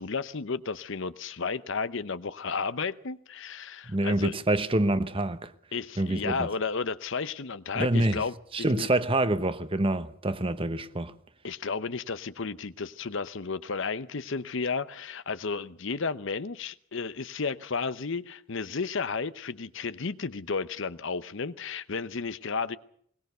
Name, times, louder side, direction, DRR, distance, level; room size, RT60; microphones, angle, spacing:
voice 1, 0.0-4.3 5.7-8.3 8.8-8.9 11.4-22.8, left 4 dB, 60° left, 0.8 m, -33 dB
voice 2, 3.9-5.5 6.0-6.5 7.7-8.2 8.5-11.1, right 1 dB, 25° right, 1.0 m, -26 dB
21.5 x 20.0 x 6.7 m
head